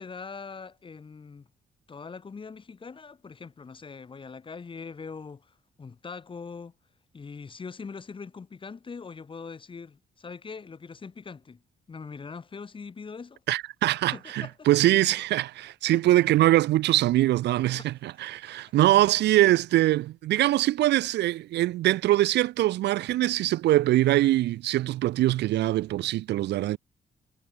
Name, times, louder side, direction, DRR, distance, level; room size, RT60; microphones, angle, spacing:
voice 1, 0.0-1.5 1.9-6.7 7.1-11.6 11.9-13.4 14.1-15.0 15.9-16.0 17.8-17.9 18.8-18.9 19.3-19.4, left 5 dB, 30° left, 5.0 m, -42 dB
voice 2, 13.5-26.8, right 15 dB, 85° right, 0.5 m, -23 dB
cardioid pair, 145°, 17 cm